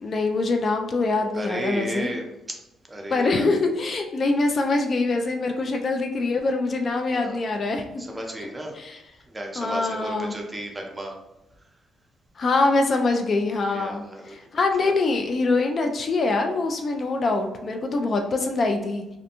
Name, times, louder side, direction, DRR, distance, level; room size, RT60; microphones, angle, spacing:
voice 1, 0.0-2.1 3.1-7.8 8.4-8.5 8.7-9.0 9.6-10.4 12.4-19.2, left 3 dB, 45° left, 4 dB, 0.3 m, -24 dB
voice 2, 1.3-2.6 2.9-3.4 7.1-7.4 8.1-8.7 9.3-11.1 13.7-14.4 14.8-14.9, right 1 dB, 20° right, 1 dB, 0.6 m, -34 dB
2.5 x 2.1 x 2.8 m, 0.93 s
cardioid pair, 85°, 0 cm